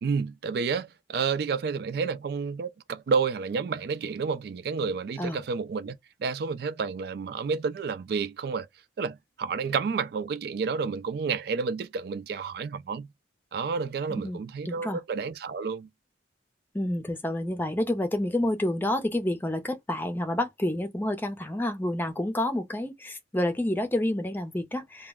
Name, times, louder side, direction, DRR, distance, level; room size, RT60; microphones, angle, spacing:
voice 1, 0.0-8.7 9.0-13.1 13.5-15.9, right 5 dB, 60° right, 0.3 m, -30 dB
voice 2, 14.1-15.0 16.7-25.1, left 1 dB, 10° left, 0.4 m, -29 dB
2.2 x 2.0 x 3.4 m
head